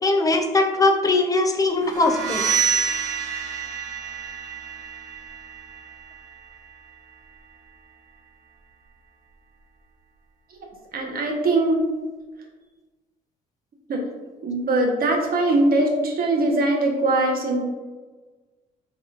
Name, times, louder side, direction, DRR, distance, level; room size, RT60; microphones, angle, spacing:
voice 1, 0.0-2.5, left 2 dB, 20° left, 4 dB, 0.5 m, -20 dB
sound 1, 1.9-7.6, right 6 dB, 80° right, 0.7 m, -29 dB
voice 2, 10.9-11.8 13.9-14.0 14.4-17.6, right 2 dB, 50° right, 1 dB, 1.0 m, -21 dB
3.8 x 3.7 x 2.4 m, 1.3 s
supercardioid pair, 75°, 19 cm